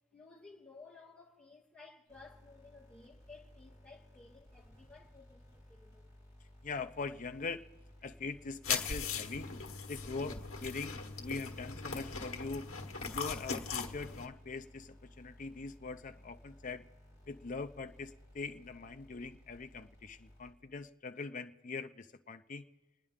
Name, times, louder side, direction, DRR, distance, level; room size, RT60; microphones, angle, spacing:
voice 1, 0.1-6.1, left 3 dB, 5° left, 2.3 m, -56 dB
sound 1, 2.1-20.9, left 1 dB, 20° right, 5.3 m, -59 dB
voice 2, 6.6-7.6 8.0-9.5 9.9-12.7 13.1-16.8 17.3-22.6, left 4 dB, 40° left, 0.5 m, -42 dB
sound 2, 8.6-14.3, left 5 dB, 80° left, 1.4 m, -39 dB
29.5 x 9.9 x 3.6 m
head